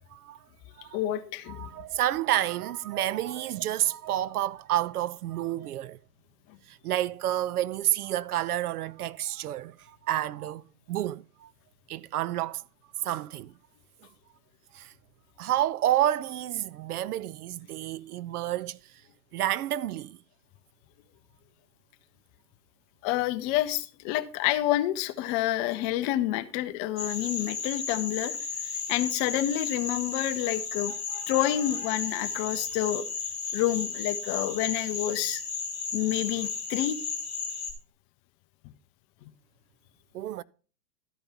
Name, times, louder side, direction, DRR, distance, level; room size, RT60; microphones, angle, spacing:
voice 1, 0.1-0.4 0.8-1.2 1.4-6.0 6.7-10.6 10.9-11.5 11.9-12.6 13.0-13.5 14.7-14.9 15.4-18.8 19.3-20.2 40.1-40.4, right 13 dB, 65° right, 0.5 m, -29 dB
voice 2, 0.9-1.7 23.0-28.4 28.9-33.1 33.5-35.4 35.9-37.0 39.2-39.3, left 13 dB, 25° left, 0.7 m, -28 dB
sound 1, 27.0-37.7, left 5 dB, ahead, 3.7 m, -34 dB
12.5 x 5.3 x 5.8 m
hypercardioid pair, 130°, 50 cm